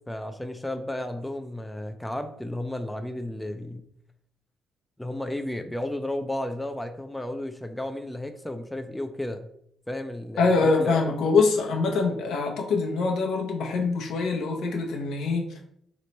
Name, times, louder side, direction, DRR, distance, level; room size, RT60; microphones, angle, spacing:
voice 1, 0.1-3.9 5.0-9.5 9.9-11.0, left 1 dB, 5° left, 6 dB, 0.3 m, -33 dB
voice 2, 10.4-15.6, left 4 dB, 80° left, 1 dB, 0.7 m, -24 dB
3.0 x 2.1 x 4.0 m, 0.70 s
cardioid pair, 90°, 0 cm